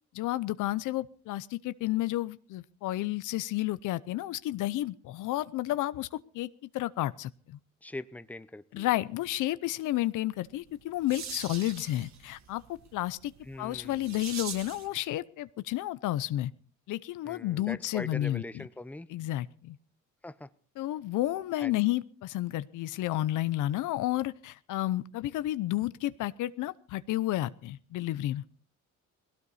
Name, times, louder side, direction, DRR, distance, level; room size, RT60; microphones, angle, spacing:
voice 1, 0.1-7.6 8.7-12.6 12.9-13.3 13.6-16.5 16.9-18.6 19.1-19.8 20.8-28.4, left 15 dB, 85° left, 15 dB, 0.8 m, -31 dB
voice 2, 7.8-8.9 13.4-14.3 17.2-19.1 20.2-20.5 21.6-21.8, left 2 dB, 5° left, 14 dB, 0.8 m, -42 dB
sound 1, 10.5-15.0, right 7 dB, 65° right, 2.1 m, -44 dB
19.0 x 17.0 x 4.2 m, 0.43 s
cardioid pair, 90°, 30 cm